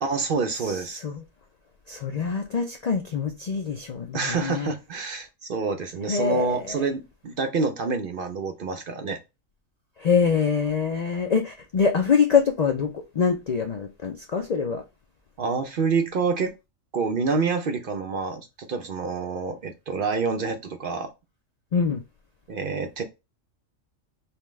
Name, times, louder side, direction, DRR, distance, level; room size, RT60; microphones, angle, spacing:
voice 1, 0.0-1.0 4.1-9.2 15.4-16.5 16.9-21.1 22.5-23.0, right 4 dB, 55° right, 0.6 m, -27 dB
voice 2, 1.9-4.7 6.1-6.8 10.0-14.8 21.7-22.0, left 6 dB, 70° left, 0.3 m, -24 dB
5.5 x 2.2 x 3.1 m
omnidirectional pair, 1.3 m